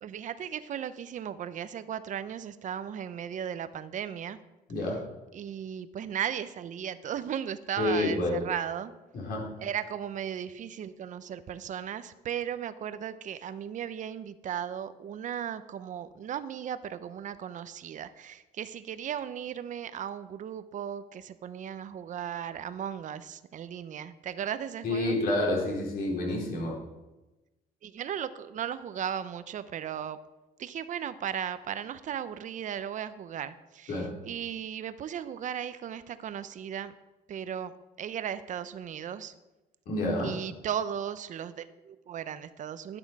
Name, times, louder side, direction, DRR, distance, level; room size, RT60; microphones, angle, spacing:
voice 1, 0.0-4.4 5.3-8.9 9.6-25.2 27.8-30.2 30.6-36.9 37.3-37.7 38.0-39.3 40.2-43.0, right 9 dB, 50° right, 13 dB, 0.7 m, -36 dB
voice 2, 7.8-8.4 9.1-9.5 24.8-26.7 33.9-34.1 39.9-40.3, left 2 dB, 65° left, -3 dB, 4.6 m, -28 dB
11.5 x 8.9 x 4.8 m, 1.1 s
cardioid pair, 110°, 17 cm